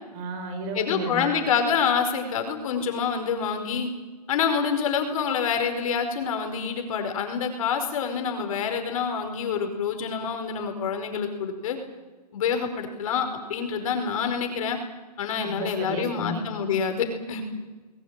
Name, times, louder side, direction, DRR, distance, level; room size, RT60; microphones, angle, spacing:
voice 1, 0.1-1.3 15.4-16.4, right 1 dB, 30° right, 6 dB, 4.7 m, -33 dB
voice 2, 0.7-3.9 4.3-11.8 12.3-14.8 15.2-17.4, left 6 dB, 55° left, 6 dB, 5.1 m, -27 dB
21.5 x 21.0 x 9.0 m, 1.2 s
hypercardioid pair, 150°, 21 cm